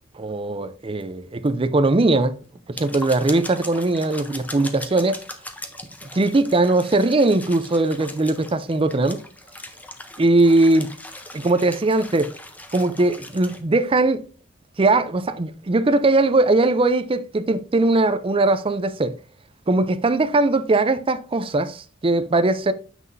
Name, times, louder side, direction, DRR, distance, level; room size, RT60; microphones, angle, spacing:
voice 1, 0.1-2.4 2.7-5.2 6.1-9.2 10.2-10.9 11.3-12.3 12.7-14.2 14.8-19.1 19.7-22.7, right 2 dB, 25° right, 0.5 m, -20 dB
sound 1, 1.0-1.1 1.5-1.6 1.9-2.0 2.5-13.6, left 1 dB, 10° left, 0.7 m, -39 dB
7.5 x 6.1 x 2.6 m
head